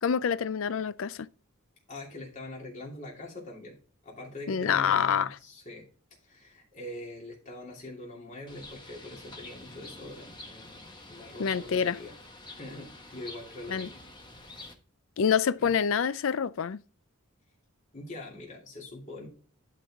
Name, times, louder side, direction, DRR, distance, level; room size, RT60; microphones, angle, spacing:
voice 1, 0.0-1.3 4.5-5.4 11.4-12.0 13.7-13.9 15.2-16.8, left 7 dB, 65° left, 0.4 m, -26 dB
voice 2, 1.9-3.8 4.0-5.9 6.2-12.1 12.5-14.0 14.3-14.7 15.6-15.7 17.9-19.3, left 2 dB, 35° left, 2.8 m, -43 dB
Bird, 8.5-14.7, left 2 dB, 20° left, 1.3 m, -47 dB
11.5 x 4.7 x 3.6 m
head